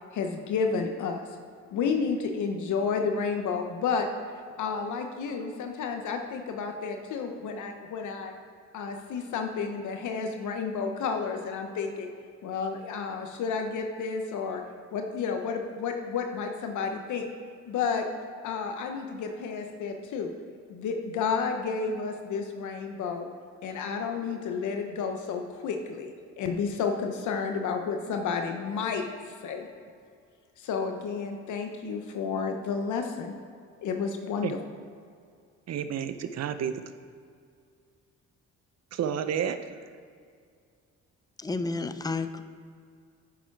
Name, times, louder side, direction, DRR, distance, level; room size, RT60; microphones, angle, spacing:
voice 1, 0.1-1.3 1.7-4.1 4.6-8.3 8.7-12.1 12.4-14.6 14.9-17.3 17.6-18.1 18.4-20.3 20.7-23.3 23.6-29.7 30.6-33.3 33.8-34.6, left 5 dB, 75° left, 4 dB, 1.0 m, -31 dB
voice 2, 35.7-36.8 38.9-39.7, right 8 dB, 60° right, 11 dB, 0.7 m, -30 dB
voice 3, 41.4-42.4, left 3 dB, 15° left, 10 dB, 0.5 m, -31 dB
10.0 x 7.2 x 4.7 m, 2.2 s
cardioid pair, 90°, 30 cm